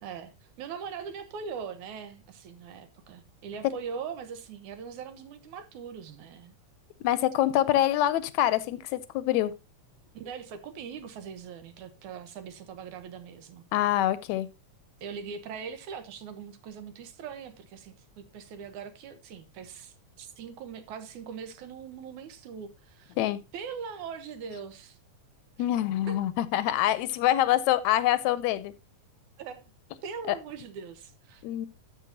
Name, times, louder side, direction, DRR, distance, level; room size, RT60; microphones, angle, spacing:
voice 1, 0.0-6.6 7.8-7.9 10.1-13.6 15.0-23.1 23.5-25.0 25.6-25.7 26.1-26.2 29.4-29.7 30.0-31.4, right 6 dB, 85° right, 2.5 m, -41 dB
voice 2, 7.0-9.5 13.7-14.5 23.2-23.4 25.6-28.7 31.4-31.7, left 13 dB, 80° left, 1.9 m, -25 dB
13.0 x 7.1 x 2.8 m
omnidirectional pair, 3.3 m